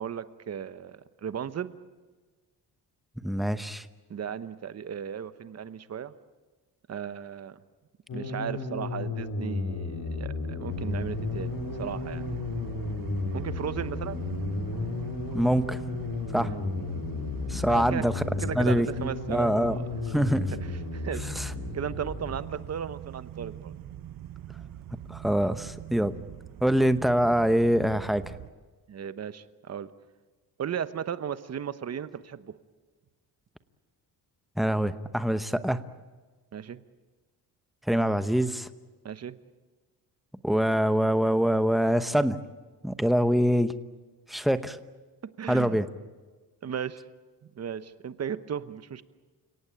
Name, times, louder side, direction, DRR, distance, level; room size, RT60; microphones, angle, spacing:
voice 1, 0.0-1.8 4.1-6.1 6.9-7.6 8.1-12.2 13.3-14.2 16.3-16.7 17.7-18.1 18.4-19.8 20.5-20.6 20.9-23.7 28.9-29.9 30.6-32.5 36.5-36.8 39.0-39.4 45.4-45.8 46.6-47.0 47.5-49.0, right 8 dB, 40° right, 13 dB, 1.0 m, -36 dB
voice 2, 3.2-3.9 15.3-15.8 16.3-16.5 17.5-18.2 18.5-19.8 20.1-20.5 21.4-21.5 25.1-26.1 26.6-28.2 34.6-35.8 37.9-38.7 40.4-42.4 42.8-43.7 44.3-44.8 45.5-45.8, equal, ahead, 11 dB, 0.9 m, -24 dB
sound 1, 8.1-22.6, left 3 dB, 50° left, 3.2 m, -33 dB
sound 2, 10.7-28.5, right 11 dB, 60° right, 1.2 m, -42 dB
sound 3, 16.5-19.7, left 9 dB, 75° left, 2.0 m, -50 dB
30.0 x 17.5 x 8.8 m, 1.3 s
cardioid pair, 150°, 38 cm